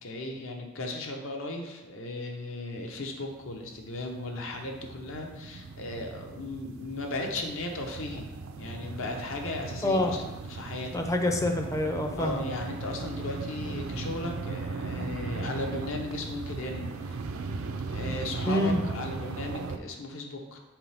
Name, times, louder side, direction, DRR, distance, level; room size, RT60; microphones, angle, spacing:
voice 1, 0.0-8.3 8.6-11.0 12.2-17.2 17.9-20.6, left 2 dB, 65° left, 3 dB, 0.9 m, -36 dB
sound 1, 2.8-2.9 3.2-19.8, right 4 dB, 75° right, 0.5 m, -38 dB
voice 2, 10.9-12.4 18.5-18.8, left 1 dB, 15° left, 4 dB, 0.5 m, -26 dB
6.0 x 4.6 x 3.4 m, 1.1 s
head